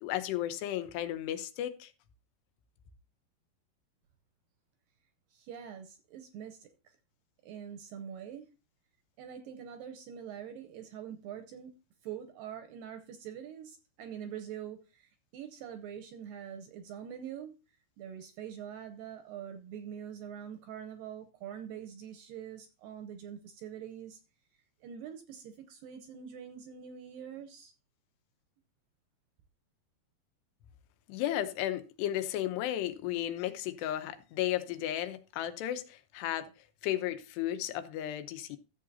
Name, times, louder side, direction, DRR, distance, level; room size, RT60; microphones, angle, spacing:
voice 1, 0.0-1.9 31.1-36.5 36.8-38.6, left 12 dB, 85° left, 3.0 m, -34 dB
voice 2, 5.3-7.0 7.4-8.5 9.2-11.8 12.0-17.5 18.0-24.2 24.8-27.7, right 9 dB, 75° right, 2.1 m, -44 dB
14.0 x 7.6 x 2.7 m
omnidirectional pair, 4.7 m